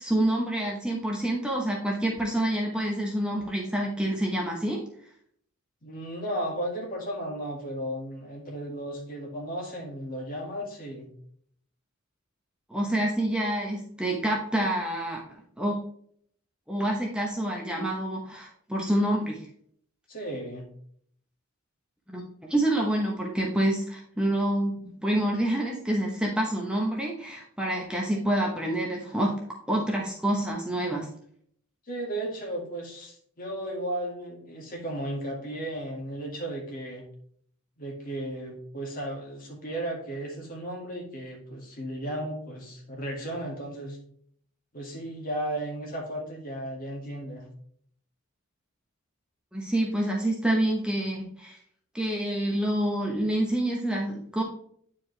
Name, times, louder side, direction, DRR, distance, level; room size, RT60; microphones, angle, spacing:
voice 1, 0.0-4.8 12.7-15.8 16.7-19.5 22.1-29.4 29.7-31.1 49.5-51.6 51.9-54.4, right 1 dB, 5° right, -2 dB, 0.9 m, -27 dB
voice 2, 5.8-11.1 20.1-20.7 31.9-37.1 37.8-44.0 44.7-47.5, right 1 dB, 40° left, 0 dB, 2.0 m, -35 dB
9.2 x 4.6 x 3.3 m, 0.63 s
head